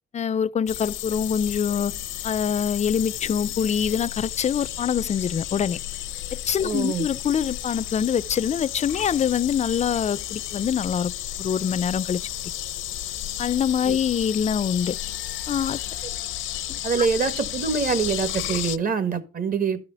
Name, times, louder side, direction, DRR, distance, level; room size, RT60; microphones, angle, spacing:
voice 1, 0.1-1.9 2.2-5.8 6.3-11.1 11.4-12.5 13.4-15.0 15.5-15.8 16.7-17.1, left 8 dB, 35° left, 0.4 m, -25 dB
sound 1, 0.7-18.8, left 13 dB, 80° left, 0.6 m, -33 dB
voice 2, 6.6-7.1 13.9-14.0 16.8-19.8, right 5 dB, 45° right, 1.7 m, -25 dB
13.0 x 4.9 x 6.9 m
cardioid pair, 90°, 20 cm